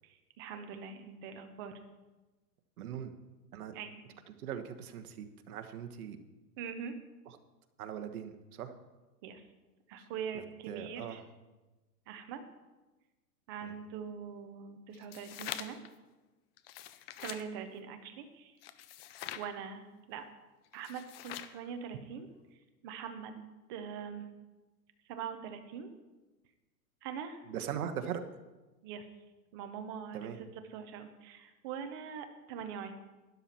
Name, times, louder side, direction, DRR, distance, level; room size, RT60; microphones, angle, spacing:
voice 1, 0.0-1.8 3.7-4.0 6.6-7.0 9.2-9.4 9.9-11.2 12.1-12.4 13.5-15.8 17.2-18.6 19.4-20.3 20.7-22.3 22.8-23.4 23.7-24.3 25.1-25.9 27.0-27.4 28.8-29.1 29.5-32.9, right 7 dB, 15° right, 7 dB, 0.4 m, -43 dB
voice 2, 2.8-3.1 3.5-3.8 4.4-6.2 7.3-7.4 7.8-8.7 10.3-11.2 13.6-13.7 27.5-28.2 30.1-30.4, right 9 dB, 65° right, 7 dB, 1.3 m, -40 dB
sound 1, 14.9-15.9 16.6-17.5 18.6-19.5 20.7-21.6, left 12 dB, 40° left, 0.6 m, -44 dB
12.0 x 10.5 x 4.3 m, 1.2 s
hypercardioid pair, 150°, 48 cm